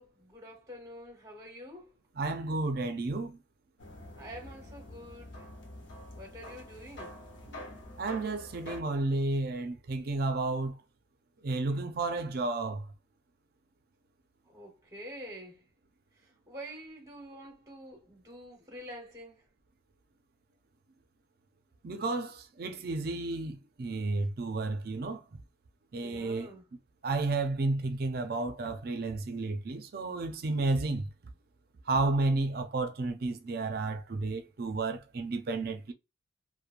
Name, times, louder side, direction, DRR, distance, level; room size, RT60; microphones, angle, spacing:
voice 1, 0.0-1.9 4.2-5.5 6.2-7.1 14.5-15.6 16.5-19.4 26.0-26.6, equal, 20° right, 0.9 m, -47 dB
voice 2, 2.2-3.4 7.5-7.7 8.0-10.7 11.4-12.9 21.8-25.2 25.9-26.5 27.0-31.1 31.9-35.9, right 3 dB, 50° right, 0.4 m, -32 dB
sound 1, 3.8-8.8, left 1 dB, 70° left, 0.7 m, -46 dB
3.0 x 2.1 x 2.5 m
head